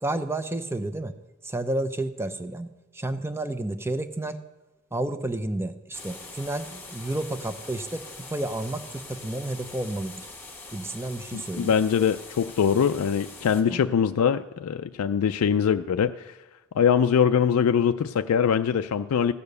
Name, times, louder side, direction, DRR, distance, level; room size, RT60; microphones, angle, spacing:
voice 1, 0.0-1.1 1.4-4.4 4.9-8.0 8.3-10.3 10.7-11.7 13.7-13.8, right 2 dB, 10° right, 10 dB, 0.6 m, -31 dB
sound 1, 5.9-13.6, left 3 dB, 10° left, 1.4 m, -43 dB
voice 2, 11.3-16.4 16.7-19.3, left 7 dB, 85° left, 9 dB, 0.4 m, -23 dB
15.5 x 6.9 x 6.7 m, 1.1 s
head